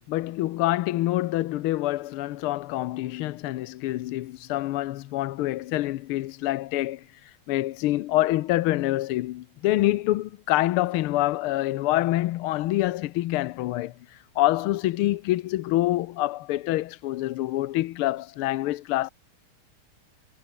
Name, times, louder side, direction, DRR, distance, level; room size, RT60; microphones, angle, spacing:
voice 1, 0.1-7.0 7.5-13.9 14.3-19.1, left 16 dB, 85° left, 1.6 m, -26 dB
omnidirectional pair, 2.4 m